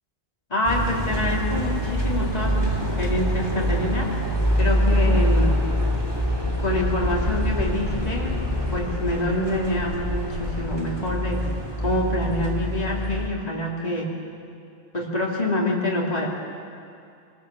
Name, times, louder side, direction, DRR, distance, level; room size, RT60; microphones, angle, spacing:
voice 1, 0.5-4.2 4.5-5.6 6.6-8.3 8.7-11.4 11.8-14.1 14.9-16.3, left 1 dB, 35° left, -3 dB, 3.1 m, -26 dB
sound 1, 0.6-13.3, equal, 20° right, 2.7 m, -25 dB
sound 2, 5.7-10.8, left 1 dB, 60° left, 3.5 m, -31 dB
25.0 x 20.0 x 7.6 m, 2.5 s
omnidirectional pair, 1.1 m